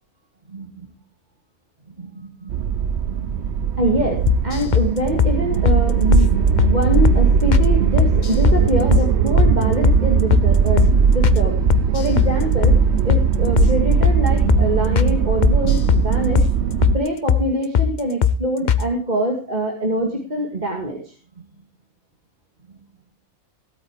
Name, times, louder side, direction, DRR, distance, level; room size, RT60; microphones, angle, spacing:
voice 1, 0.5-0.9 2.0-2.8 3.1-3.3 3.8-4.2 4.4-11.5 11.9-12.7 13.0-16.4 16.9-21.0, equal, 30° right, 0 dB, 2.4 m, -24 dB
sound 1, 2.5-17.0, right 7 dB, 55° right, 0.9 m, -19 dB
sound 2, 4.3-4.9 5.2-5.4 5.7-5.8 6.1-6.3 6.6-6.7 7.1-7.2 7.5-7.7 8.0-8.6 8.9-9.1 9.4-9.5 9.8-10.0 10.3-10.5 10.8-10.9 11.2-11.4 11.7-12.3 12.6-12.8 13.1-13.3 13.6-13.7 14.0-14.2 14.5-14.7 15.0-15.1 15.4-16.1 16.4-16.5 16.8-17.0 17.3-17.4 17.7-17.9 18.2-18.4 18.7-18.8, left 8 dB, 50° left, 0.6 m, -17 dB
16.5 x 8.6 x 4.9 m, 0.37 s
omnidirectional pair, 1.6 m